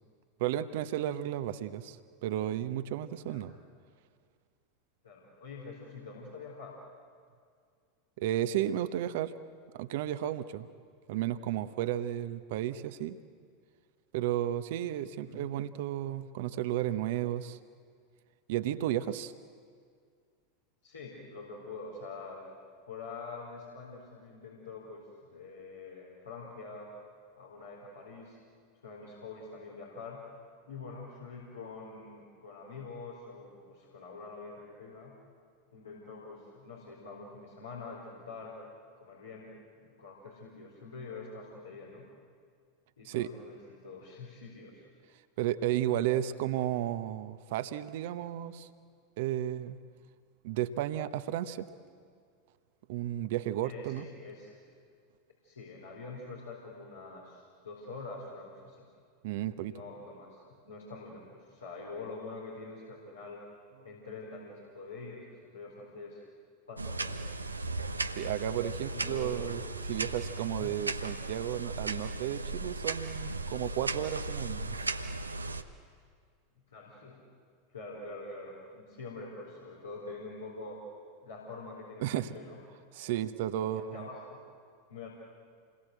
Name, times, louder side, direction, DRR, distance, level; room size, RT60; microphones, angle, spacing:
voice 1, 0.4-3.5 8.2-9.3 9.7-10.7 11.1-13.2 14.1-17.6 18.5-19.3 43.0-43.3 45.4-48.7 49.2-49.8 50.4-51.7 52.9-54.1 59.2-59.8 68.1-69.6 69.9-74.9 82.0-82.3 82.9-84.1, right 12 dB, 60° right, 12 dB, 1.0 m, -33 dB
voice 2, 5.0-6.8 15.2-15.5 20.8-22.5 22.9-26.9 27.4-28.4 28.8-30.2 30.6-35.1 35.7-38.7 39.0-42.1 43.0-44.8 53.6-54.6 55.4-58.9 59.7-63.4 63.8-66.2 66.7-67.3 68.9-69.5 70.6-70.8 76.7-77.2 77.7-80.8 81.2-82.6 82.9-83.4 83.6-84.4 84.9-85.1, left 3 dB, 80° left, -4 dB, 4.3 m, -45 dB
sound 1, 66.8-75.6, right 2 dB, 85° right, 0.9 m, -36 dB
28.0 x 21.5 x 7.9 m, 2.1 s
figure-of-eight pair, 85°, 0 cm